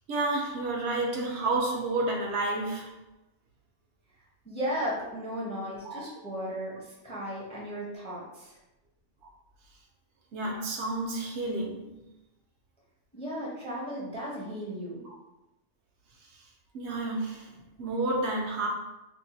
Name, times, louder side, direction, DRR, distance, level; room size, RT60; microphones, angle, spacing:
voice 1, 0.1-2.9 5.8-6.1 10.3-12.0 15.0-15.2 16.7-18.7, right 2 dB, 70° right, 1 dB, 0.8 m, -30 dB
voice 2, 4.4-8.6 13.1-15.0, equal, 5° left, -6 dB, 0.5 m, -35 dB
2.6 x 2.2 x 4.0 m, 0.98 s
omnidirectional pair, 1.2 m